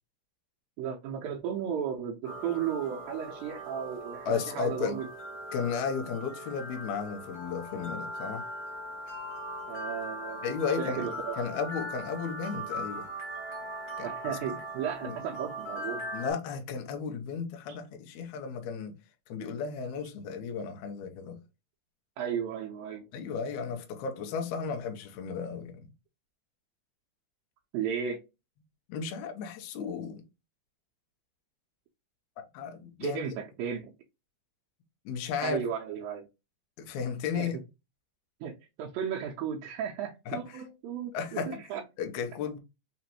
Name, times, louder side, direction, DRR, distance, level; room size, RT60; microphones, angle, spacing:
voice 1, 0.8-5.1 9.7-10.5 10.8-11.4 14.0-16.1 22.2-23.1 27.7-28.2 33.0-33.9 35.4-36.3 37.3-37.5 38.4-41.8, right 8 dB, 80° right, 2.2 m, -34 dB
sound 1, 2.2-16.3, right 1 dB, 50° left, 2.2 m, -40 dB
voice 2, 4.3-5.0 5.5-8.4 10.4-11.1 11.4-13.1 14.0-14.4 15.0-15.2 16.1-19.0 19.3-21.4 23.1-25.9 28.9-30.2 32.5-33.2 35.1-35.6 36.8-37.6 40.3-40.6 41.1-41.6 42.0-42.6, left 6 dB, 80° left, 1.7 m, -34 dB
5.8 x 3.1 x 2.9 m
omnidirectional pair, 4.5 m